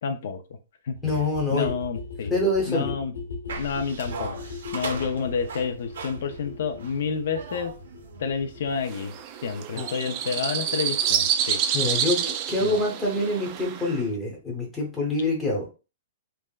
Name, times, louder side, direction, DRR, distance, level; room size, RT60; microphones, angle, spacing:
voice 1, 0.0-0.4 0.9-1.0 1.5-2.3 2.7-3.1 3.6-7.7 8.2-9.1 9.4-11.6 12.6-12.8, left 6 dB, 65° left, 8 dB, 0.4 m, -29 dB
sound 1, 1.0-12.5 12.7-12.8 13.0-13.1 13.3-13.4 13.6-13.7 13.9-14.0 14.2-14.3, left 4 dB, 85° left, 1.0 m, -40 dB
voice 2, 1.0-1.8 2.3-3.0 9.7-9.9 11.7-12.2 12.5-15.7, left 2 dB, 10° left, -1 dB, 0.9 m, -26 dB
sound 2, 3.5-8.8, right 4 dB, 75° right, 0.7 m, -39 dB
sound 3, 8.8-14.0, right 9 dB, 35° right, 0.3 m, -28 dB
3.4 x 2.0 x 2.3 m, 0.31 s
hypercardioid pair, 150°, 0 cm